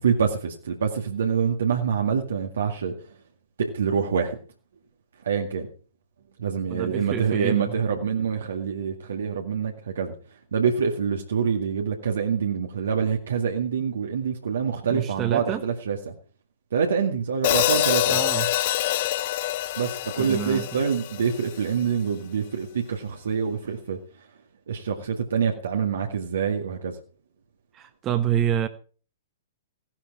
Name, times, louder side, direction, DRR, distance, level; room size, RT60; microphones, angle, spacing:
voice 1, 0.0-2.9 3.6-4.4 5.2-5.7 6.4-10.1 10.5-16.1 16.7-18.2 19.8-24.3 24.7-27.0, right 6 dB, 65° right, 2.1 m, -26 dB
voice 2, 6.7-7.8 14.9-15.6 18.1-18.5 20.2-20.8 27.7-28.7, right 10 dB, 25° right, 1.4 m, -27 dB
Hi-hat, 17.4-21.6, left 13 dB, 45° left, 1.1 m, -25 dB
17.0 x 12.0 x 4.8 m
figure-of-eight pair, 110°, 0 cm